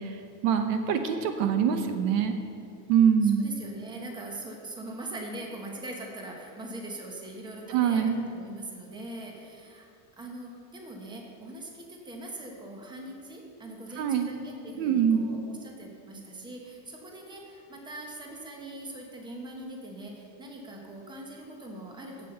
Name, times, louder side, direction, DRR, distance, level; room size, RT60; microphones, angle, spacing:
voice 1, 0.0-2.3 2.9-3.5 7.7-8.2 14.0-14.3 14.8-15.3, right 8 dB, 65° right, 7 dB, 1.0 m, -24 dB
voice 2, 3.2-9.9 10.2-22.3, right 1 dB, 10° right, 1 dB, 1.1 m, -42 dB
8.2 x 7.7 x 6.7 m, 2.4 s
cardioid pair, 165°, 41 cm